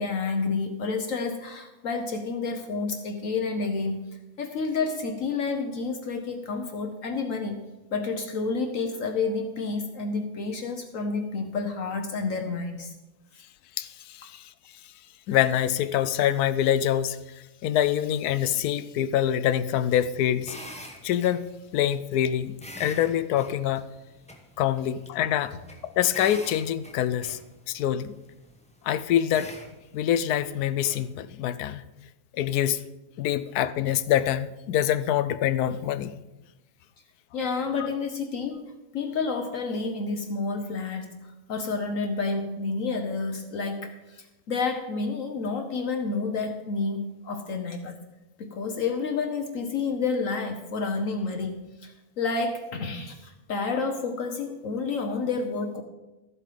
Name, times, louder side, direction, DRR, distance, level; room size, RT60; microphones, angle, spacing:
voice 1, 0.0-4.0 4.4-7.6 7.9-12.9 37.3-38.6 38.9-48.0 48.4-55.8, left 4 dB, 65° left, 5 dB, 1.2 m, -30 dB
voice 2, 13.8-14.5 15.3-17.2 17.6-20.6 21.0-21.5 21.7-23.8 24.6-25.5 25.8-27.4 27.7-28.1 28.8-29.5 29.9-31.8 32.3-32.8 33.2-36.1, left 11 dB, 90° left, 14 dB, 1.1 m, -25 dB
sound 1, 19.7-31.1, left 1 dB, 5° left, 0.9 m, -47 dB
13.0 x 7.6 x 5.0 m, 1.0 s
omnidirectional pair, 1.6 m